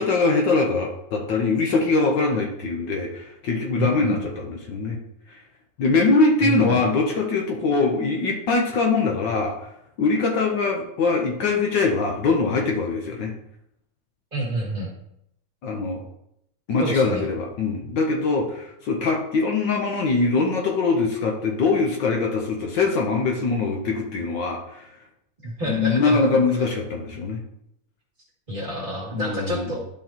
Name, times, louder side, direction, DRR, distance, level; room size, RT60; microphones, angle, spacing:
voice 1, 0.0-5.0 5.3-5.4 5.8-9.7 10.0-13.3 15.6-16.0 16.7-24.9 25.7-27.4 29.1-29.7, left 3 dB, 65° left, 1 dB, 1.5 m, -22 dB
voice 2, 3.8-4.2 6.4-6.8 14.3-14.9 16.8-17.3 25.4-26.2 28.5-29.8, equal, 25° right, -5 dB, 2.2 m, -28 dB
12.0 x 4.6 x 2.9 m, 0.78 s
omnidirectional pair, 2.3 m